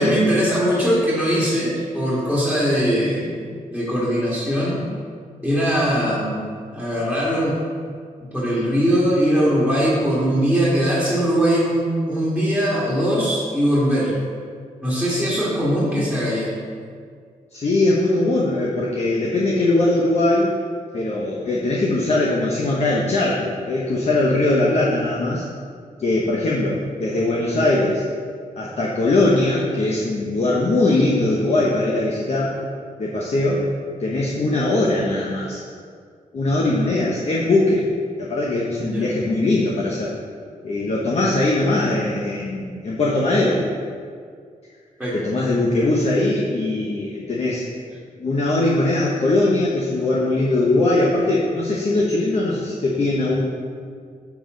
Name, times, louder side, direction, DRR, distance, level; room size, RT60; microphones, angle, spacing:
voice 1, 0.0-3.3 3.7-4.9 5.4-7.6 8.3-14.2 14.8-16.5 38.8-39.1 45.0-45.2, equal, ahead, -8 dB, 2.1 m, -21 dB
voice 2, 17.5-20.5 20.9-25.4 26.0-28.0 28.6-32.6 33.0-33.7 34.0-35.6 36.3-37.9 38.2-40.1 40.6-43.6 45.1-47.7 48.2-53.5, left 2 dB, 50° left, -3 dB, 1.0 m, -20 dB
7.2 x 7.1 x 3.9 m, 2.1 s
cardioid pair, 100°, 14 cm